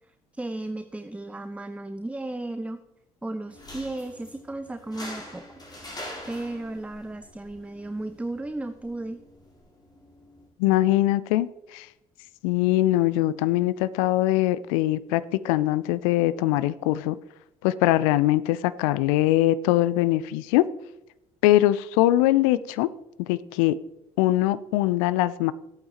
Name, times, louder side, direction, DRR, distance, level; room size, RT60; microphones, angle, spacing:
voice 1, 0.3-2.8 3.2-5.4 6.3-9.2, right 2 dB, 5° right, 10 dB, 0.6 m, -34 dB
sound 1, 3.5-10.5, left 1 dB, 20° left, 3.9 m, -44 dB
voice 2, 10.6-11.9 12.4-17.2 17.6-20.7 21.4-22.9 23.2-23.8 24.2-25.5, left 15 dB, 70° left, 17 dB, 0.5 m, -22 dB
14.0 x 8.7 x 3.0 m, 0.89 s
figure-of-eight pair, 50°, 18 cm